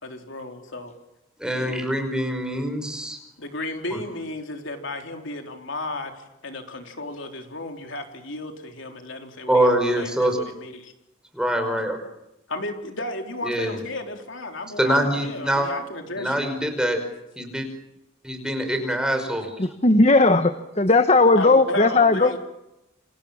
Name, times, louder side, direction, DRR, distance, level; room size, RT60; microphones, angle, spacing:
voice 1, 0.0-0.9 1.5-1.7 3.4-10.9 12.5-16.5 21.4-22.4, left 2 dB, 60° left, 4 dB, 4.0 m, -34 dB
voice 2, 1.4-3.2 3.9-4.0 9.5-10.5 11.3-12.0 13.4-13.8 14.8-15.7 16.2-17.0 17.4-17.7 18.2-19.6, right 1 dB, 5° right, 5 dB, 5.4 m, -24 dB
voice 3, 19.6-22.4, left 3 dB, 30° left, 10 dB, 1.1 m, -17 dB
29.0 x 26.5 x 7.4 m, 0.90 s
head